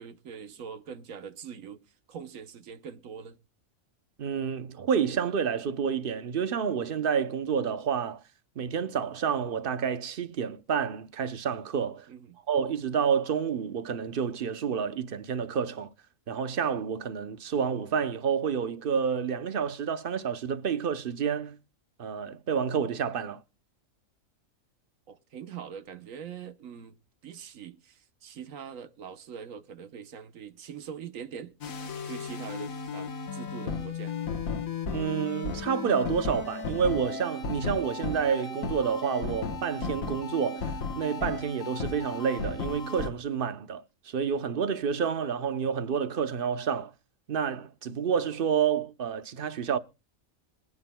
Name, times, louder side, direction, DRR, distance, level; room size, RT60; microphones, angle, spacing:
voice 1, 0.0-3.4 12.1-12.4 25.1-26.9 27.2-34.1, right 7 dB, 80° right, 1.3 m, -43 dB
voice 2, 4.2-8.2 8.6-12.1 12.5-15.9 16.3-21.6 22.0-23.4 34.9-46.9 47.3-49.8, right 7 dB, 50° right, 0.8 m, -29 dB
sound 1, 31.6-43.1, left 4 dB, 85° left, 1.6 m, -35 dB
25.5 x 9.3 x 2.2 m
omnidirectional pair, 1.4 m